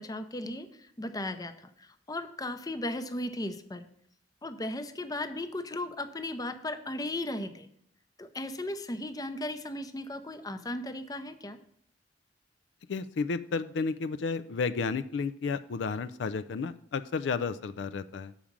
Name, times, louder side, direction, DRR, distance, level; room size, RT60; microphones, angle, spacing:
voice 1, 0.0-3.9 4.4-7.7 8.2-11.6, left 1 dB, 20° left, 10 dB, 0.6 m, -36 dB
voice 2, 12.9-18.3, left 4 dB, 80° left, 13 dB, 0.4 m, -32 dB
7.1 x 5.0 x 7.2 m, 0.68 s
head